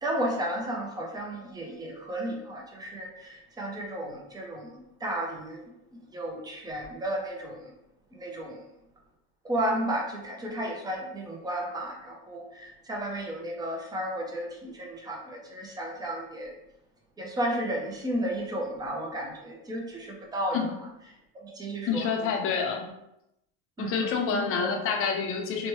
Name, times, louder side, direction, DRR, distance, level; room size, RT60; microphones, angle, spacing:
voice 1, 0.0-5.6 6.1-7.6 8.1-8.6 9.4-16.5 17.2-20.6 21.4-22.1 23.8-24.7, right 1 dB, 10° right, 0 dB, 0.5 m, -33 dB
voice 2, 21.9-22.9 23.8-25.7, left 6 dB, 35° left, 3 dB, 0.6 m, -28 dB
3.0 x 2.1 x 3.0 m, 0.84 s
supercardioid pair, 120°, 40 cm